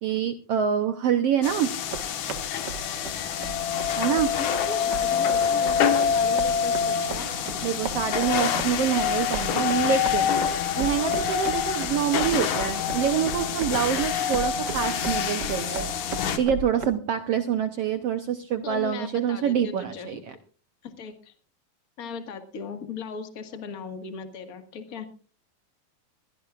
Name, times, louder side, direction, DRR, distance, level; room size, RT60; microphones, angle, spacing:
voice 1, 0.0-1.7 4.0-4.3 7.6-10.3 10.8-15.9 16.4-20.2, right 8 dB, 80° right, 8 dB, 1.3 m, -26 dB
sound 1, 1.4-16.4, left 7 dB, 65° left, 2.6 m, -26 dB
sound 2, 1.7-16.9, right 5 dB, 65° right, 1.0 m, -37 dB
voice 2, 4.4-7.6 18.6-20.2 20.8-21.3 22.0-25.1, left 5 dB, 35° left, 7 dB, 1.5 m, -38 dB
22.5 x 16.5 x 2.4 m, 0.38 s
omnidirectional pair, 3.9 m